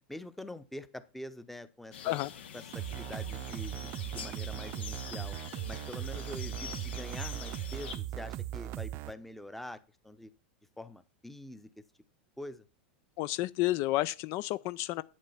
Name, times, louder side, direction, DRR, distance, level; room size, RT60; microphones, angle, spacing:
voice 1, 0.1-2.2 2.5-5.4 5.7-10.3 10.8-11.7 12.4-12.6, left 1 dB, 5° left, 0.8 m, -45 dB
sound 1, 1.9-8.0, left 8 dB, 85° left, 2.1 m, -45 dB
sound 2, 2.7-9.1, right 13 dB, 45° right, 0.6 m, -38 dB
voice 2, 13.2-15.0, left 17 dB, 50° left, 0.5 m, -31 dB
9.2 x 7.4 x 5.6 m
supercardioid pair, 130°, 6 cm